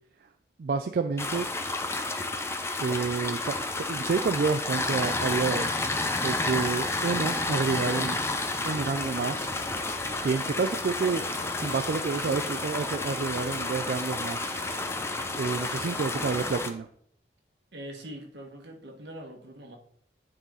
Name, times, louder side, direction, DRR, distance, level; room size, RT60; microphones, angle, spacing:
voice 1, 0.6-1.5 2.8-3.5 3.9-5.7 6.2-8.2 8.6-9.5 10.2-11.3 11.6-14.5 15.4-16.9, right 4 dB, 55° right, 0.3 m, -29 dB
sound 1, 1.2-16.7, left 2 dB, 15° left, 0.5 m, -31 dB
sound 2, 8.7-16.7, left 1 dB, 55° left, 2.1 m, -44 dB
voice 2, 17.7-19.8, right 1 dB, 80° right, 1.4 m, -43 dB
9.8 x 4.0 x 3.8 m
head